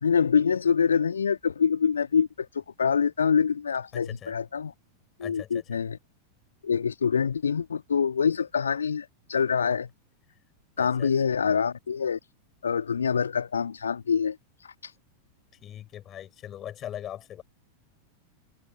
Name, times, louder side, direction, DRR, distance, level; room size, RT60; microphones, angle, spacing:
voice 1, 0.0-4.7 5.2-6.0 6.6-9.9 10.8-12.2 12.6-14.9, left 6 dB, 70° left, 1.7 m, -25 dB
voice 2, 3.9-4.3 5.2-5.8 10.8-11.1 15.6-17.4, left 11 dB, 30° left, 5.2 m, -41 dB
figure-of-eight pair, 90°, 0 cm